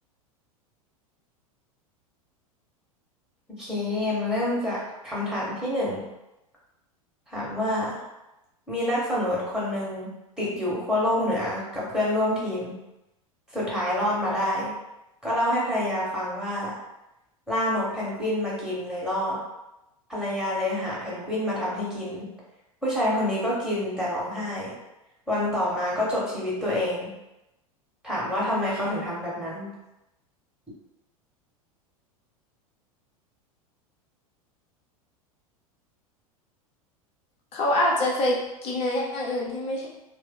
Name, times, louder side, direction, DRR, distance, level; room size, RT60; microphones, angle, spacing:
voice 1, 3.6-6.1 7.3-8.0 8.7-12.8 13.5-14.7 15.2-16.7 17.5-19.4 20.1-22.3 22.8-24.7 25.3-27.1 28.0-29.7, left 1 dB, 5° right, -8 dB, 1.3 m, -27 dB
voice 2, 37.5-38.4 38.6-39.9, left 1 dB, 35° left, -2 dB, 0.8 m, -25 dB
3.2 x 2.1 x 3.6 m, 0.93 s
figure-of-eight pair, 85°, 19 cm